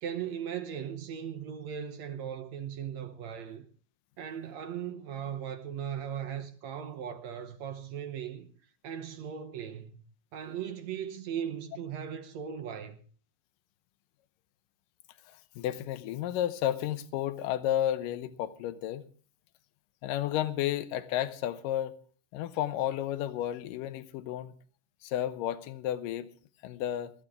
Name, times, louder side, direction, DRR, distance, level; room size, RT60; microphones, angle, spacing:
voice 1, 0.0-3.7 4.2-8.5 8.8-10.0 10.3-13.0, right 8 dB, 65° right, 1.9 m, -38 dB
voice 2, 15.6-19.1 20.0-22.0 22.3-24.5 25.0-26.3 26.6-27.1, left 12 dB, 80° left, 2.5 m, -32 dB
19.5 x 13.5 x 3.5 m
omnidirectional pair, 3.9 m